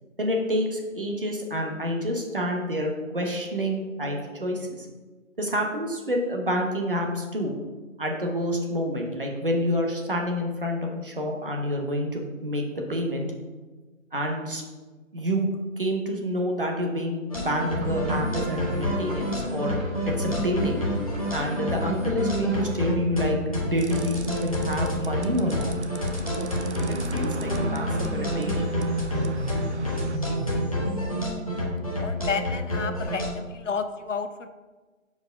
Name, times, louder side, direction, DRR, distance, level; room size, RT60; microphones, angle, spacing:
voice 1, 0.2-4.9 5.4-7.5 8.0-13.3 14.1-14.6 15.1-15.5 15.8-19.8 20.1-20.8 21.3-25.8 26.9-28.8, equal, 40° right, 1 dB, 0.9 m, -28 dB
sound 1, 17.3-33.3, equal, 25° left, 0.9 m, -28 dB
sound 2, 17.8-25.2, right 2 dB, 75° right, 1.4 m, -40 dB
sound 3, 23.8-30.2, right 4 dB, 55° right, 0.5 m, -40 dB
voice 2, 32.0-34.5, left 5 dB, 65° left, 9 dB, 0.6 m, -31 dB
4.8 x 4.4 x 5.1 m, 1.3 s
hypercardioid pair, 180°, 41 cm